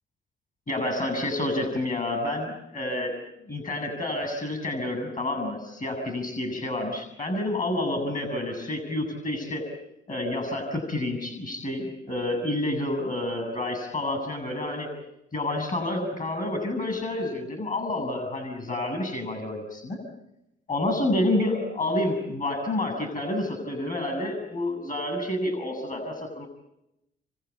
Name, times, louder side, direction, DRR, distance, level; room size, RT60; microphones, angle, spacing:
voice 1, 0.7-3.1 3.5-9.7 10.1-14.9 15.3-20.0 20.7-26.5, left 1 dB, 45° left, 6 dB, 7.4 m, -29 dB
29.0 x 24.0 x 8.6 m, 0.89 s
cardioid pair, 90°, 20 cm